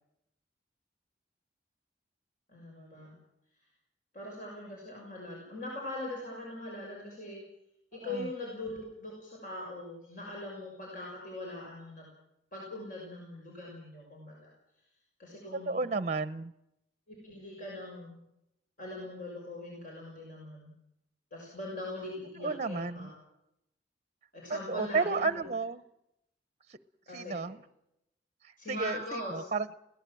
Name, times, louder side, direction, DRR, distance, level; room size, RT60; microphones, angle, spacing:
voice 1, 2.5-3.2 4.1-7.4 7.9-12.1 12.5-14.5 15.2-15.9 17.1-18.2 18.8-20.7 21.3-23.1 24.3-25.4 27.1-27.5 28.6-29.4, left 1 dB, 50° left, -2 dB, 6.4 m, -41 dB
voice 2, 15.5-16.5 22.4-23.1 24.5-25.8 26.7-26.8 27.1-27.6 28.7-29.7, right 4 dB, 40° right, 15 dB, 0.7 m, -32 dB
21.5 x 17.5 x 7.6 m, 0.81 s
head